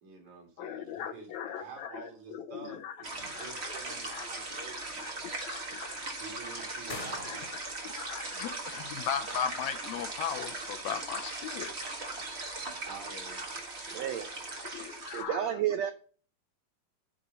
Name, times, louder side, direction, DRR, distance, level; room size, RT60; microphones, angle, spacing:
voice 1, 0.0-5.2 6.2-7.5 12.9-13.4, right 4 dB, 60° right, 2 dB, 3.7 m, -48 dB
voice 2, 0.6-3.0 3.3-3.8 4.1-4.3 5.0-6.1 7.2-11.7 14.7-15.5, left 8 dB, 75° left, 6 dB, 1.8 m, -38 dB
sound 1, 3.0-15.2, right 2 dB, 45° right, 0.8 m, -39 dB
sound 2, 3.1-4.1 6.9-7.9, left 2 dB, 20° left, 1.4 m, -45 dB
voice 3, 13.9-14.3 15.1-15.9, right 10 dB, 75° right, 8 dB, 1.6 m, -31 dB
10.0 x 5.0 x 5.3 m, 0.41 s
omnidirectional pair, 3.7 m